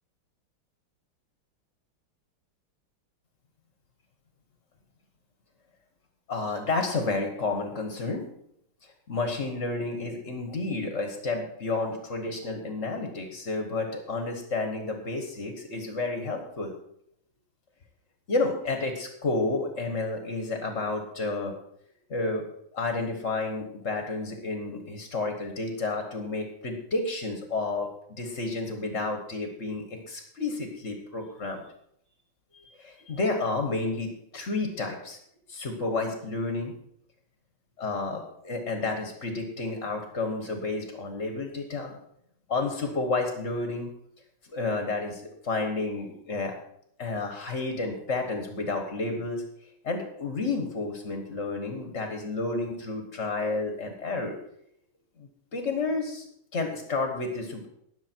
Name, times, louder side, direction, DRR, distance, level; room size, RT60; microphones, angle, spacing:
voice 1, 6.3-8.3 8.8-16.7 18.3-21.5 22.1-22.4 22.7-27.9 28.2-31.6 32.5-35.2 35.5-36.7 37.8-42.0 42.5-43.9 44.5-46.5 47.0-49.4 49.8-54.4 55.2-56.3 56.5-57.7, left 3 dB, 35° left, 4 dB, 1.5 m, -31 dB
19.5 x 6.9 x 4.5 m, 0.72 s
omnidirectional pair, 2.4 m